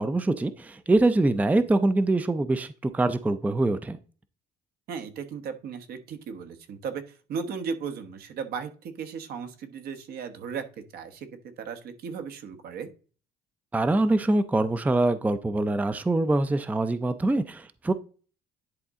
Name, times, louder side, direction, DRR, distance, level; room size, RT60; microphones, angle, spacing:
voice 1, 0.0-4.0 13.7-17.9, right 2 dB, 10° right, 12 dB, 0.5 m, -24 dB
voice 2, 4.9-11.3 11.6-12.9, right 6 dB, 70° right, 8 dB, 1.2 m, -36 dB
10.5 x 4.1 x 3.6 m, 0.37 s
cardioid pair, 110°, 17 cm